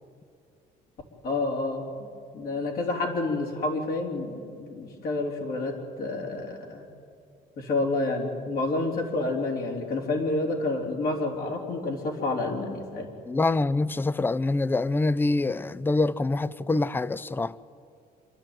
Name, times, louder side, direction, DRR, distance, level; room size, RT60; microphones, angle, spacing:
voice 1, 1.2-1.9 2.3-6.9 7.6-13.1, left 2 dB, 65° left, 3.9 m, -29 dB
voice 2, 13.3-17.6, left 2 dB, 10° left, 0.5 m, -25 dB
27.0 x 12.0 x 9.1 m
cardioid pair, 110°, 17 cm